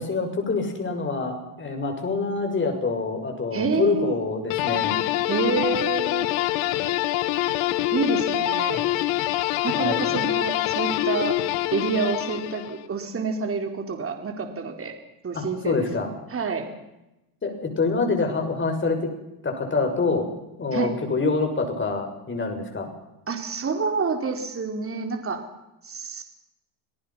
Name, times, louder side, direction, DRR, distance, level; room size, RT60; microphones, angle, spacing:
voice 1, 0.0-5.0 8.7-8.8 9.8-10.2 15.3-16.1 17.4-19.1 19.4-20.3 20.6-22.9, left 4 dB, 25° left, 4 dB, 6.6 m, -26 dB
voice 2, 3.5-4.2 5.3-6.3 7.9-8.8 9.6-11.4 11.7-14.9 15.2-15.9 16.3-16.7 20.7-20.9 23.3-25.4 25.8-26.2, right 4 dB, 25° right, 5 dB, 4.4 m, -28 dB
sound 1, 4.5-12.8, left 14 dB, 70° left, 1.9 m, -25 dB
27.5 x 18.5 x 5.8 m, 0.93 s
supercardioid pair, 105°, 48 cm